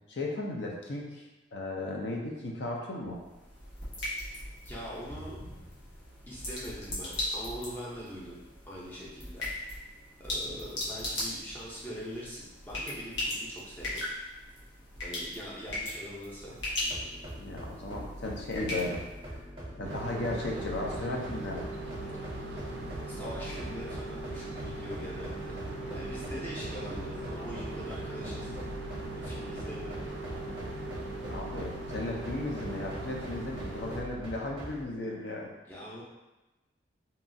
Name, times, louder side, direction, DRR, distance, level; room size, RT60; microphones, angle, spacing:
voice 1, 0.1-1.2 1.5-3.2 10.5-10.6 17.4-19.0 19.7-21.7 31.3-35.5, left 2 dB, 65° left, -1 dB, 0.5 m, -35 dB
sound 1, 3.0-19.5, left 1 dB, 90° left, 1.0 m, -39 dB
voice 2, 4.6-5.4 6.3-9.5 10.2-14.0 15.0-16.5 23.1-25.6 25.9-28.5 29.2-30.1 35.7-36.0, equal, 10° left, -6 dB, 0.5 m, -42 dB
sound 2, 16.8-34.8, equal, 30° right, 0.7 m, -43 dB
sound 3, 19.8-34.0, right 2 dB, 75° right, 0.4 m, -39 dB
2.9 x 2.3 x 2.6 m, 1.1 s
head